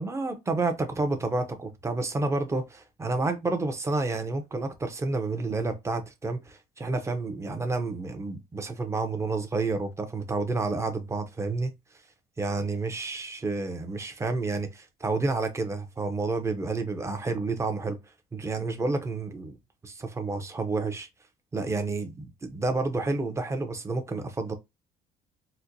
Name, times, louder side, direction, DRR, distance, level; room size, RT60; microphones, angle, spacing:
voice 1, 0.0-11.7 12.4-18.0 18.3-19.6 19.8-21.1 21.5-24.5, right 3 dB, 15° right, 0.7 m, -30 dB
4.3 x 2.1 x 2.6 m
cardioid pair, 110°, 17 cm